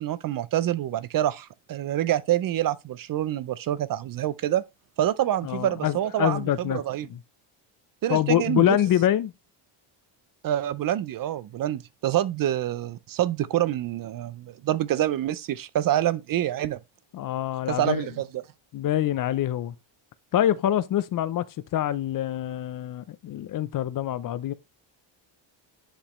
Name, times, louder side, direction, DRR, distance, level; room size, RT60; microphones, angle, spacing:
voice 1, 0.0-4.6 5.0-7.1 8.0-8.8 10.4-16.8 17.7-18.4, right 12 dB, 45° right, 0.4 m, -26 dB
voice 2, 5.4-6.8 7.1-7.2 8.1-9.3 17.1-18.1 18.7-19.7 20.3-21.5 21.7-24.5, left 11 dB, 45° left, 0.5 m, -25 dB
10.0 x 5.1 x 3.0 m
cardioid pair, 150°, 49 cm